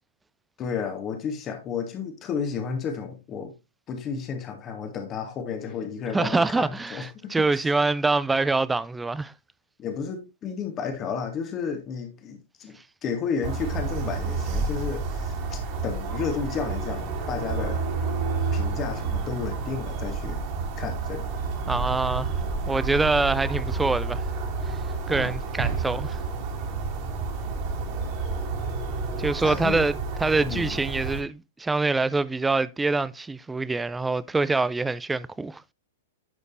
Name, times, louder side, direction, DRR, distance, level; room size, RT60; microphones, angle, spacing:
voice 1, 0.6-3.5 3.9-7.7 9.8-12.8 13.0-17.8 18.5-20.4 20.8-21.3 25.1-25.3 29.4-29.8 30.5-30.8, left 6 dB, 30° left, 1.3 m, -32 dB
voice 2, 6.1-9.3 21.7-22.3 22.6-24.3 24.7-24.8 25.1-26.2 29.2-35.7, right 3 dB, 10° right, 0.4 m, -25 dB
sound 1, 13.4-31.2, right 4 dB, 45° right, 2.4 m, -30 dB
10.5 x 5.1 x 2.6 m
figure-of-eight pair, 105°, 0 cm